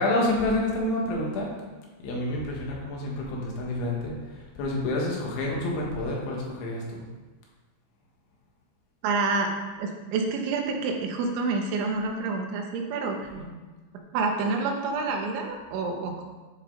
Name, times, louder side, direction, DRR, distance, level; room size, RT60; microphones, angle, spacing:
voice 1, 0.0-1.5 2.0-7.0 13.4-13.5, left 1 dB, 90° left, -3 dB, 4.0 m, -28 dB
voice 2, 9.0-9.5 9.8-13.2 14.1-16.2, right 4 dB, 90° right, 2 dB, 3.5 m, -28 dB
11.0 x 5.0 x 3.9 m, 1.3 s
omnidirectional pair, 5.3 m